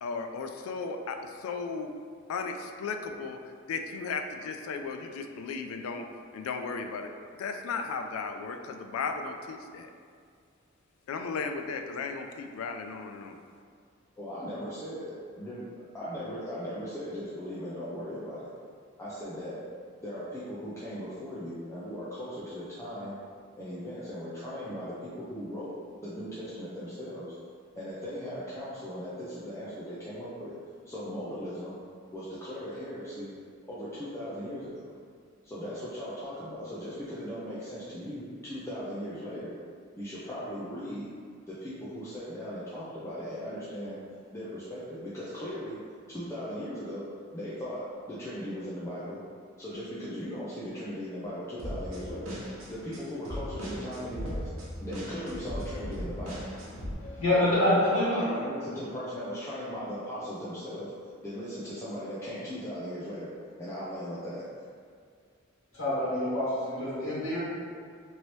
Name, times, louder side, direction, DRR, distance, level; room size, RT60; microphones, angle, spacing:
voice 1, 0.0-1.9 2.3-3.4 3.7-6.0 6.3-7.1 7.4-9.9 11.1-13.4, left 4 dB, 90° left, 6 dB, 0.3 m, -35 dB
voice 2, 14.2-15.6 15.9-18.5 19.0-19.6 20.0-23.2 23.6-25.7 26.0-27.3 27.7-30.5 30.9-31.7 32.1-33.3 33.7-34.9 35.4-39.5 40.0-41.1 41.5-44.0 44.3-45.8 46.1-47.0 47.3-47.8 48.1-49.2 49.6-54.4 54.8-56.3 57.4-60.9 61.2-63.3 63.6-64.4, equal, 15° left, -10 dB, 0.4 m, -38 dB
sound 1, 51.6-56.9, equal, 80° right, 0.8 m, -38 dB
voice 3, 57.0-58.2 65.7-67.4, left 1 dB, 70° left, -10 dB, 1.5 m, -26 dB
3.1 x 2.7 x 3.0 m, 2.2 s
head